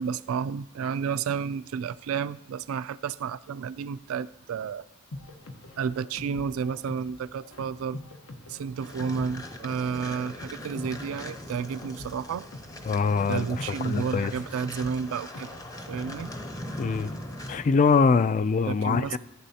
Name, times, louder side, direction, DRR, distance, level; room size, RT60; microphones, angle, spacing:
voice 1, 0.0-4.9 5.8-8.0 8.5-12.5 13.3-15.5 15.9-16.3 18.6-19.2, right 6 dB, 80° right, 0.3 m, -31 dB
sound 1, 5.1-16.4, left 2 dB, 80° left, 1.0 m, -46 dB
sound 2, 8.8-17.7, left 1 dB, 15° left, 0.7 m, -40 dB
voice 2, 12.9-14.3 16.8-17.1 17.5-19.2, left 5 dB, 40° left, 0.3 m, -23 dB
15.0 x 9.2 x 2.8 m
head